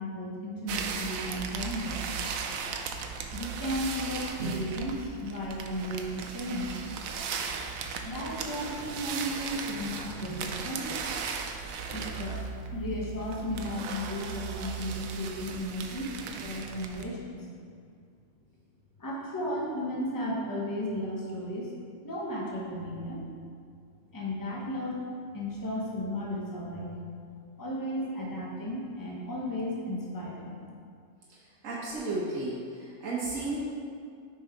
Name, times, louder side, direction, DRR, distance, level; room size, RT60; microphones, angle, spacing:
voice 1, 0.0-2.1 3.3-6.8 8.0-11.0 11.9-12.4 12.7-17.5 19.0-21.7 22.0-23.2 24.1-26.9 27.6-30.6, equal, 15° left, -4 dB, 1.0 m, -34 dB
sound 1, 0.7-17.0, right 5 dB, 90° right, 1.0 m, -37 dB
voice 2, 31.6-33.6, right 2 dB, 75° right, -6 dB, 1.4 m, -33 dB
6.6 x 5.4 x 4.4 m, 2.3 s
omnidirectional pair, 1.4 m